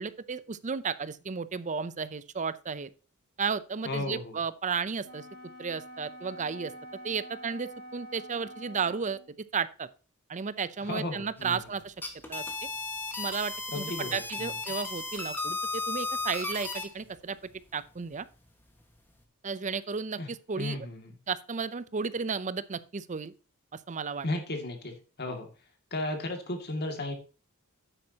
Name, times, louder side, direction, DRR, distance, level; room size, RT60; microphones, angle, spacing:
voice 1, 0.0-2.9 3.4-5.3 5.6-6.7 7.0-9.2 9.5-9.9 10.3-11.9 12.3-12.4 13.2-17.4 17.7-18.3 19.4-20.9 21.3-23.3 23.9-24.3, right 5 dB, 35° right, 0.6 m, -33 dB
voice 2, 3.8-4.4 10.8-11.6 13.7-14.5 20.2-20.3 20.6-21.2 24.2-24.9 25.2-25.5 25.9-27.1, left 2 dB, 50° left, 2.3 m, -34 dB
Wind instrument woodwind instrument, 5.0-9.3, right 1 dB, 50° right, 1.8 m, -46 dB
sound 1, 11.9-16.9, left 3 dB, 10° left, 1.6 m, -35 dB
9.9 x 8.7 x 2.9 m
head